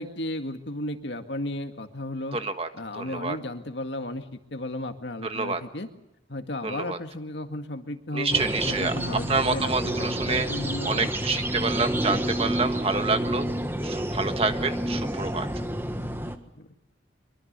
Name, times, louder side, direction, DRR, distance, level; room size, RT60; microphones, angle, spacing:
voice 1, 0.0-2.4 2.7-5.9 6.3-11.1 12.1-12.3 16.6-16.7, left 1 dB, 70° left, 6 dB, 2.0 m, -34 dB
voice 2, 2.3-2.7 2.9-3.4 5.2-5.6 6.6-7.0 8.1-8.9 9.3-10.5 10.8-13.5 13.8-15.5, right 4 dB, 30° right, 7 dB, 1.5 m, -27 dB
sound 1, 8.3-16.4, right 1 dB, 10° right, 1.4 m, -29 dB
24.0 x 23.5 x 6.8 m, 0.88 s
head